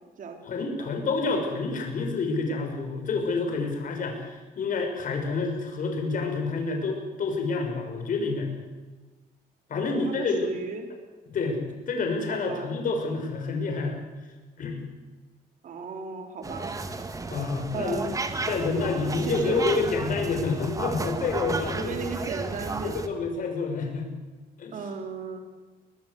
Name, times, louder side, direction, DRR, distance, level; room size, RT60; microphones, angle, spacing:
voice 1, 0.4-8.5 9.7-10.6 11.3-11.6 11.9-14.0 14.6-14.8 17.3-18.0 18.5-22.0 22.8-24.1 24.6-24.8, left 3 dB, 50° left, 3 dB, 5.8 m, -28 dB
voice 2, 9.7-10.9 12.3-12.7 15.6-16.7 17.7-18.1 19.2-19.6 21.7-23.2 24.7-25.4, right 4 dB, 50° right, 4 dB, 3.3 m, -36 dB
sound 1, 16.4-23.1, right 3 dB, 20° right, 1.7 m, -33 dB
23.0 x 20.0 x 8.3 m, 1.3 s
cardioid pair, 165°, 17 cm